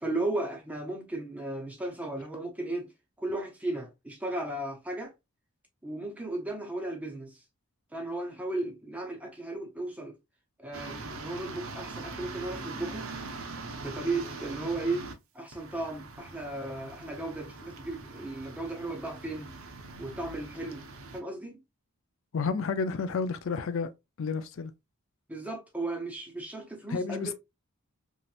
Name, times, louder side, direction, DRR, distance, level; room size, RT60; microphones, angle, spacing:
voice 1, 0.0-2.9 3.2-5.1 5.8-7.4 7.9-10.1 10.6-13.1 13.8-15.1 15.3-19.5 20.0-20.9 21.1-21.6 25.3-27.3, right 2 dB, 5° right, 0.5 m, -35 dB
sound 1, 10.7-15.1 15.5-21.2, right 3 dB, 65° right, 0.6 m, -42 dB
voice 2, 22.3-23.9 24.2-24.7 26.9-27.3, left 5 dB, 60° left, 0.4 m, -31 dB
3.1 x 2.8 x 2.3 m
head